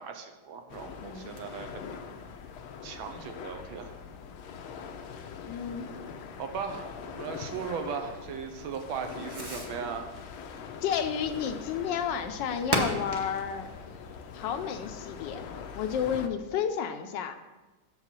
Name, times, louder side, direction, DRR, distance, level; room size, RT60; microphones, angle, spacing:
voice 1, 0.0-1.8 2.8-4.0 6.4-10.1, right 6 dB, 85° right, 6 dB, 1.6 m, -37 dB
Fireworks, 0.6-15.2, right 1 dB, 25° right, 0.5 m, -41 dB
sound 1, 0.7-16.3, left 6 dB, 90° left, 1.5 m, -43 dB
voice 2, 5.4-5.9 10.8-13.7 14.3-15.4 15.7-17.3, left 8 dB, 75° left, 8 dB, 1.1 m, -31 dB
7.2 x 5.6 x 6.0 m, 1.2 s
omnidirectional pair, 2.2 m